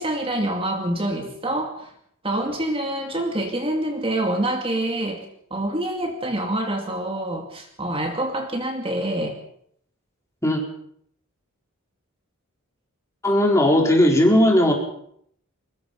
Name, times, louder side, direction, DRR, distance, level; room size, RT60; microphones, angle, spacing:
voice 1, 0.0-1.9 2.2-5.3 5.5-9.4, right 1 dB, 25° right, 3 dB, 2.5 m, -26 dB
voice 2, 13.2-14.7, left 1 dB, 15° left, 1 dB, 4.2 m, -17 dB
23.5 x 21.0 x 5.5 m, 0.67 s
head